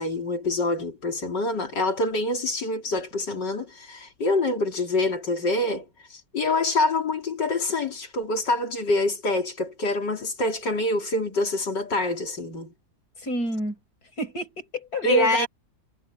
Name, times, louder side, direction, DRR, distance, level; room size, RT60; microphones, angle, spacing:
voice 1, 0.0-5.8 6.1-12.7 15.0-15.5, left 2 dB, 90° left, 4.0 m, -26 dB
voice 2, 13.2-13.8 14.2-15.5, left 2 dB, 60° left, 6.1 m, -28 dB
omnidirectional pair, 1.8 m